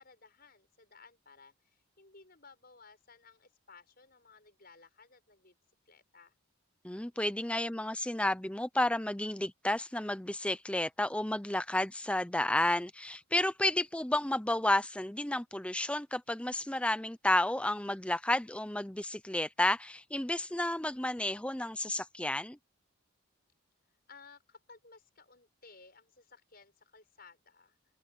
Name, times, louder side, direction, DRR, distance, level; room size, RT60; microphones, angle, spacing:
voice 1, 0.0-5.5 5.9-6.3 24.1-27.8, left 4 dB, 45° left, 6.8 m, -58 dB
voice 2, 6.8-22.6, left 1 dB, 5° left, 0.6 m, -31 dB
head